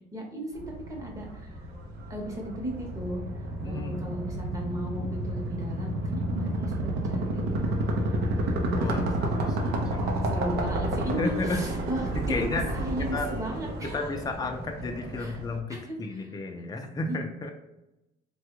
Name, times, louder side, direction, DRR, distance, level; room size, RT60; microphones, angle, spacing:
voice 1, 0.1-1.6 2.1-3.2 3.6-8.4 8.9-9.7 10.2-12.4 12.7-14.0 15.2-15.4 15.7-16.3 17.1-17.2, equal, 20° right, 0 dB, 0.9 m, -36 dB
sound 1, 0.5-15.6, right 1 dB, 75° right, 0.6 m, -31 dB
voice 2, 3.6-4.0 8.7-10.1 11.2-11.7 12.1-12.7 13.1-13.3 13.8-17.5, left 3 dB, 25° left, 4 dB, 0.5 m, -33 dB
3.2 x 2.3 x 3.0 m, 0.92 s
cardioid pair, 110°, 17 cm